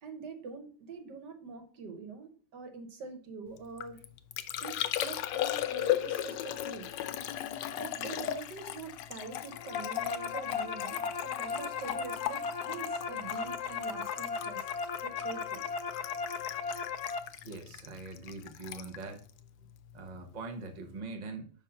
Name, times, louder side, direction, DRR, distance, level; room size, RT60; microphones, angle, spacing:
voice 1, 0.0-4.0 4.6-6.9 7.8-14.7 15.0-15.6, right 4 dB, 75° right, 1.6 m, -44 dB
Liquid, 3.6-20.2 20.4-21.0, left 12 dB, 85° left, 1.3 m, -37 dB
sound 1, 9.4-17.2, left 5 dB, 70° left, 1.0 m, -36 dB
voice 2, 17.4-19.2 19.9-21.5, right 3 dB, 45° right, 0.5 m, -42 dB
5.4 x 3.6 x 5.5 m
omnidirectional pair, 1.9 m